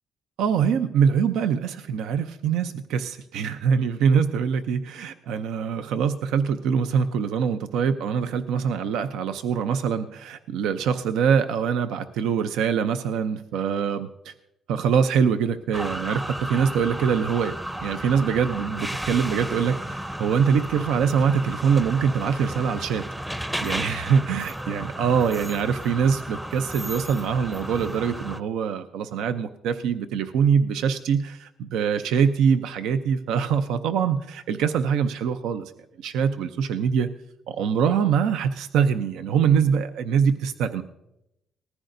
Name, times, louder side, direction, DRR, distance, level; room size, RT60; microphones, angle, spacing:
voice 1, 0.4-14.3 14.7-23.0 23.6-35.7 36.0-37.1 37.5-40.8, right 7 dB, 90° right, 9 dB, 0.6 m, -24 dB
sound 1, 15.7-28.4, equal, 10° right, 0.6 m, -33 dB
19.5 x 14.5 x 2.6 m, 0.88 s
cardioid pair, 90°, 0 cm